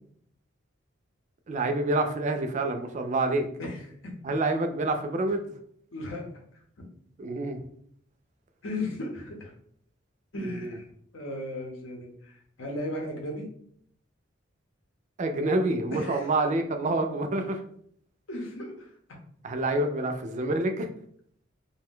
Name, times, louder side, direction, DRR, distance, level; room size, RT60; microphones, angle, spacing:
voice 1, 1.5-3.5 4.2-5.4 7.2-7.6 10.4-10.7 15.2-17.6 19.4-20.9, right 2 dB, 40° right, 6 dB, 0.3 m, -27 dB
voice 2, 3.6-4.1 5.3-5.4 5.9-6.3 8.6-9.5 10.3-10.9 11.1-13.5 15.9-16.3 18.3-19.0, left 1 dB, 90° left, 1 dB, 0.8 m, -36 dB
2.6 x 2.2 x 3.6 m, 0.65 s
head